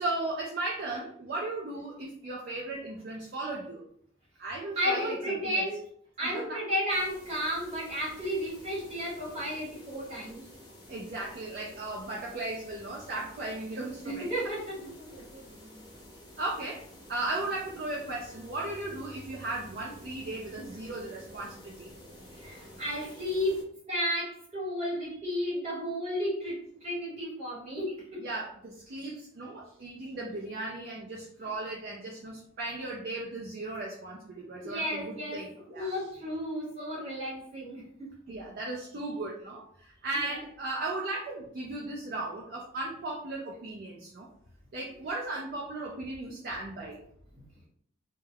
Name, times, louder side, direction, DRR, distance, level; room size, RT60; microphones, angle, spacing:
voice 1, 0.0-3.8 4.4-5.7 6.2-6.6 10.9-14.5 16.4-21.9 28.2-35.9 38.3-44.3 44.7-47.0, right 2 dB, 45° right, -2 dB, 0.4 m, -36 dB
voice 2, 4.8-5.8 6.2-10.5 14.0-15.8 22.3-28.2 34.6-35.4 35.7-38.1 40.1-40.4, equal, 30° right, -6 dB, 1.3 m, -33 dB
sound 1, 6.9-23.6, left 1 dB, 20° left, 0.5 m, -51 dB
2.2 x 2.1 x 3.3 m, 0.65 s
head